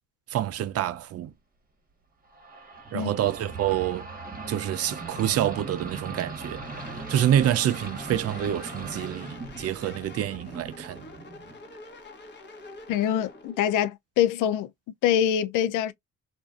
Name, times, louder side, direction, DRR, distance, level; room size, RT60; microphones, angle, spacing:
voice 1, 0.3-1.3 2.9-4.1 4.5-6.6 6.9-11.1, right 11 dB, 50° right, 0.5 m, -27 dB
sound 1, 2.3-11.7, right 3 dB, 30° right, 1.0 m, -39 dB
sound 2, 6.6-13.6, left 2 dB, 35° left, 1.1 m, -46 dB
voice 2, 12.9-14.7 15.0-15.9, left 10 dB, 80° left, 0.5 m, -24 dB
2.6 x 2.4 x 2.3 m
cardioid pair, 90°, 31 cm